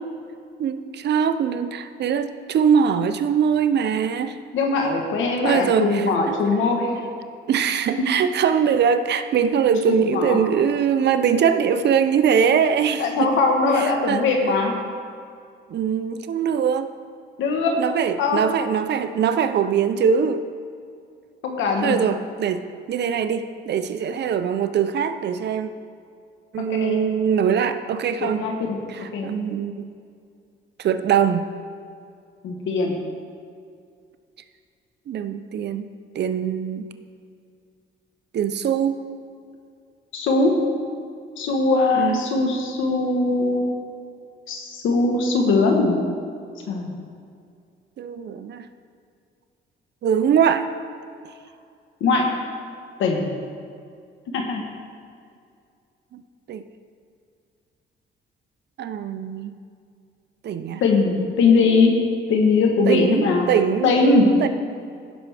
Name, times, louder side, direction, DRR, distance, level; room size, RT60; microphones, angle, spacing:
voice 1, 0.6-4.4 5.4-6.6 7.0-7.1 7.5-13.4 13.7-14.3 15.7-16.9 17.8-20.4 21.8-25.7 26.5-28.4 28.9-29.9 30.8-31.5 35.1-36.9 38.3-39.0 41.9-42.2 48.0-48.7 50.0-50.7 56.1-56.2 56.5-56.6 58.8-59.5 60.4-60.8 62.9-64.0 64.4-64.5, right 7 dB, 60° right, 11 dB, 0.6 m, -22 dB
voice 2, 4.5-7.0 8.0-8.1 10.0-10.4 13.0-14.7 17.4-17.8 18.2-18.4 21.4-22.0 26.6-27.0 28.2-28.8 29.1-29.4 32.4-33.0 40.1-40.5 41.4-43.7 44.5-46.0 46.7-46.9 52.0-52.3 53.0-53.3 54.3-54.6 60.8-61.9 62.3-63.5 63.8-64.3, left 3 dB, 80° left, 2 dB, 1.2 m, -20 dB
16.0 x 6.1 x 3.4 m, 2.3 s
cardioid pair, 90°, 20 cm